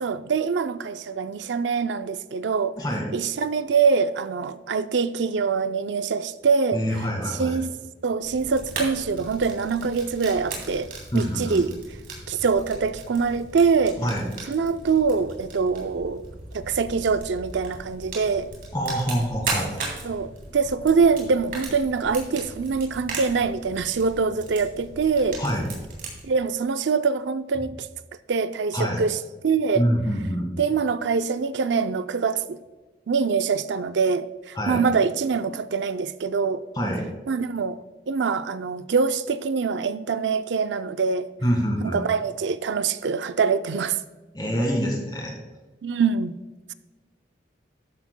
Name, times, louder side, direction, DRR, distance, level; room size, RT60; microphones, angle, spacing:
voice 1, 0.0-2.8 3.1-6.8 7.3-7.7 8.0-11.7 12.3-14.0 14.5-16.2 16.5-18.5 20.0-25.4 26.2-27.9 28.3-29.2 29.4-29.8 30.6-32.6 33.1-36.6 37.3-37.8 38.1-41.3 41.8-44.0 45.8-46.3, right 5 dB, 75° right, 0.5 m, -24 dB
voice 2, 2.8-3.1 6.7-7.6 11.1-11.7 14.0-14.3 18.7-19.7 25.4-25.7 28.7-29.0 29.8-30.5 34.6-34.8 36.7-37.0 41.4-42.0 44.3-45.3, equal, 20° left, 1.8 m, -25 dB
Fire, 8.2-26.2, right 3 dB, 50° right, 3.1 m, -37 dB
13.0 x 10.0 x 2.2 m
head